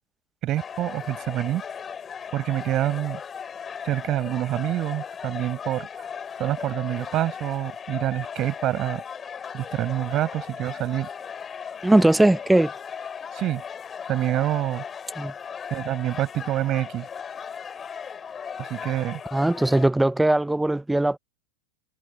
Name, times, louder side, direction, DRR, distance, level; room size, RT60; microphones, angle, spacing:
voice 1, 0.4-1.6 2.3-3.2 3.8-5.9 6.4-9.0 9.5-11.1 13.3-13.6 14.1-14.8 15.7-17.1 18.6-19.2, right 14 dB, 35° right, 6.7 m, -26 dB
sound 1, 0.6-19.9, left 7 dB, 20° left, 5.6 m, -37 dB
voice 2, 11.8-12.7 15.2-15.3 19.3-21.2, right 1 dB, 5° right, 0.7 m, -19 dB
figure-of-eight pair, 90°, 0 cm